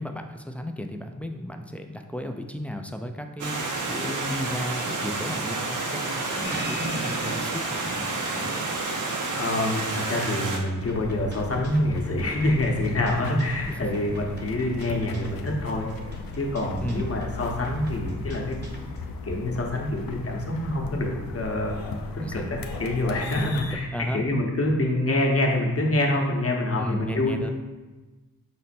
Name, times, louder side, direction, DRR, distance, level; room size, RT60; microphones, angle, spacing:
voice 1, 0.0-8.5 13.7-13.8 16.8-17.0 22.2-22.5 23.3-23.5 23.9-24.3 26.8-27.5, left 1 dB, 5° left, 4 dB, 0.4 m, -34 dB
Stream, 3.4-10.6, right 3 dB, 65° right, 0.7 m, -30 dB
sound 1, 6.4-19.1, right 1 dB, 30° right, 0.9 m, -41 dB
voice 2, 9.4-15.9 16.3-18.6 19.2-21.8 22.1-27.5, left 1 dB, 45° left, 0 dB, 0.9 m, -26 dB
sound 2, 10.8-23.8, left 4 dB, 90° left, 0.5 m, -37 dB
5.3 x 2.1 x 4.2 m, 1.2 s
cardioid pair, 55°, 34 cm